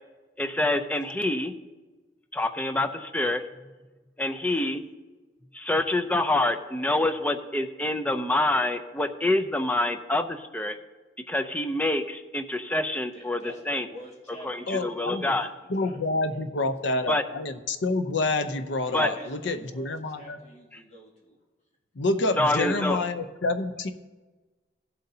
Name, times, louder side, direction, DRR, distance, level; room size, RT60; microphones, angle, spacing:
voice 1, 0.4-1.5 2.3-3.4 4.2-4.8 5.5-10.8 11.3-13.4 13.7-13.9 14.4-15.5 17.1-17.2 18.9-19.1 22.4-23.0, left 1 dB, 10° left, 7 dB, 0.5 m, -26 dB
voice 2, 13.1-14.8 15.1-16.2 16.5-16.6 18.9-21.4, equal, 40° left, -4 dB, 2.3 m, -47 dB
voice 3, 14.7-15.4 15.7-20.4 21.9-23.9, left 2 dB, 75° left, 9 dB, 0.7 m, -28 dB
16.5 x 7.8 x 2.8 m, 1.3 s
head